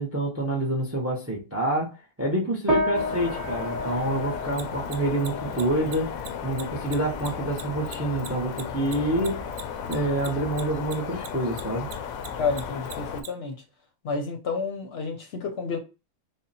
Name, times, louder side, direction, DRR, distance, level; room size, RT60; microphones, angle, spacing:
voice 1, 0.0-6.1 6.4-9.4 9.9-11.9, right 1 dB, 20° right, 0.4 m, -27 dB
sound 1, 2.7-12.3, equal, ahead, 0.8 m, -34 dB
sound 2, 2.9-13.2, left 7 dB, 85° left, 1.0 m, -35 dB
Mechanisms, 4.5-11.3 11.5-13.3, right 9 dB, 65° right, 0.9 m, -39 dB
voice 2, 12.4-13.5 14.0-15.8, left 4 dB, 60° left, 0.8 m, -30 dB
3.5 x 2.1 x 4.0 m
omnidirectional pair, 1.4 m